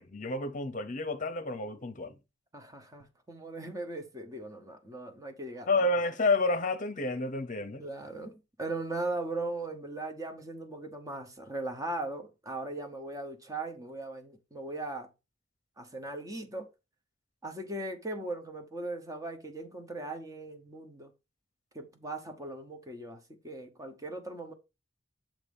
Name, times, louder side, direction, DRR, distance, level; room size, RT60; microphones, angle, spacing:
voice 1, 0.0-2.1 5.7-7.8, left 2 dB, 40° left, 0.9 m, -30 dB
voice 2, 2.5-5.8 7.8-15.1 15.8-16.7 17.4-21.1 21.7-24.5, right 2 dB, 15° right, 1.1 m, -39 dB
7.4 x 2.9 x 5.3 m
head